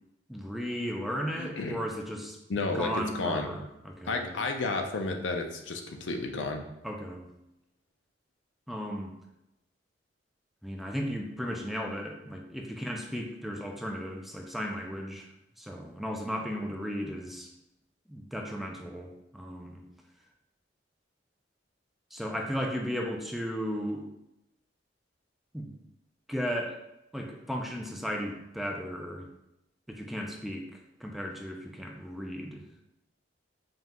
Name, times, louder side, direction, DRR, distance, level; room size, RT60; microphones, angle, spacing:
voice 1, 0.3-2.4 2.7-4.4 6.8-7.3 8.7-9.1 10.6-17.5 18.1-19.8 22.1-24.1 25.5-25.7 26.3-26.8 27.1-29.3 29.9-32.7, equal, ahead, 1 dB, 0.3 m, -35 dB
voice 2, 1.3-1.8 2.5-3.5 4.0-6.6, left 3 dB, 70° left, 4 dB, 0.5 m, -32 dB
5.2 x 2.3 x 2.9 m, 0.87 s
head